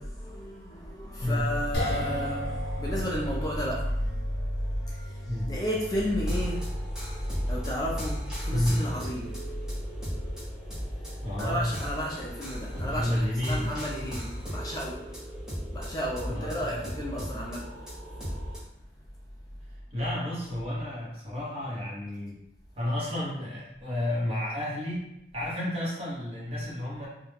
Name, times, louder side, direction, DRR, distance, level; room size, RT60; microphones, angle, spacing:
voice 1, 0.0-15.4 15.7-18.4, equal, 20° left, -4 dB, 0.3 m, -33 dB
sound 1, 1.7-14.0, equal, 65° left, 0.6 m, -39 dB
sound 2, 6.2-18.6, equal, 5° right, 0.7 m, -37 dB
voice 2, 11.2-11.6 12.8-13.7 16.3-16.7 19.9-22.4 22.8-25.1 25.3-27.1, left 1 dB, 35° right, -6 dB, 0.9 m, -31 dB
2.3 x 2.1 x 3.2 m, 0.84 s
head